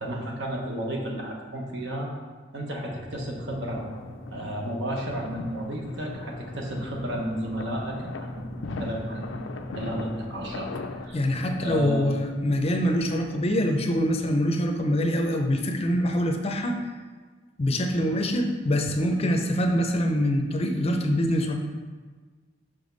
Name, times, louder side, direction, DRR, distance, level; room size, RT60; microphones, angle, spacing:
voice 1, 0.0-2.1 2.5-3.9 4.3-8.4 8.8-9.4 9.7-10.7 11.0-11.2 11.5-12.1, right 1 dB, 65° right, 0 dB, 1.1 m, -32 dB
sound 1, 2.9-13.4, equal, 30° right, 2.0 m, -43 dB
sound 2, 3.5-11.1, left 3 dB, 85° left, 0.5 m, -40 dB
voice 2, 11.1-16.8 17.6-21.5, equal, 30° left, 4 dB, 0.5 m, -24 dB
5.7 x 5.1 x 3.9 m, 1.4 s
head